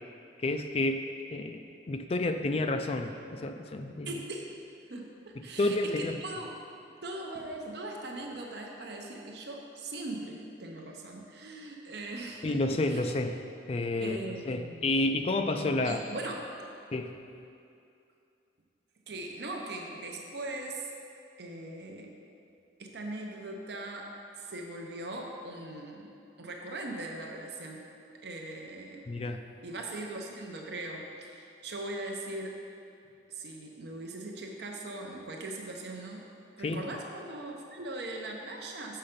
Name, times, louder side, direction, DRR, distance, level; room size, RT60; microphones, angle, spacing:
voice 1, 0.4-4.1 5.6-6.1 12.4-13.4 13.7-14.2 14.5-16.0 16.9-17.1 29.1-29.4 36.6-36.8, left 2 dB, 35° left, 6 dB, 0.4 m, -30 dB
voice 2, 4.1-4.6 4.9-6.5 7.0-13.1 14.0-14.9 15.8-16.4 19.1-20.9 21.4-22.1 22.8-26.1 26.4-27.8 28.2-29.0 29.6-32.6 33.3-36.3 36.6-39.0, right 2 dB, 65° right, 1 dB, 0.7 m, -40 dB
6.7 x 5.7 x 5.1 m, 2.6 s
head